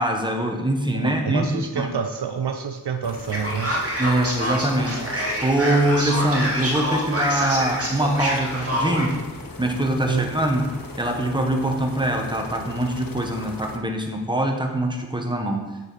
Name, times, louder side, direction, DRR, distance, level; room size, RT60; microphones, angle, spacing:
voice 1, 0.0-1.9 4.0-9.2 9.6-15.7, right 1 dB, 10° right, 2 dB, 1.4 m, -23 dB
voice 2, 0.9-3.8 10.1-10.3, right 7 dB, 70° right, 7 dB, 0.7 m, -27 dB
sound 1, 3.0-13.8, left 3 dB, 55° left, 1.0 m, -39 dB
Male speech man speaking, 3.3-9.1, equal, 35° right, 2.3 m, -26 dB
8.8 x 6.7 x 4.2 m, 1.3 s
cardioid pair, 45°, 41 cm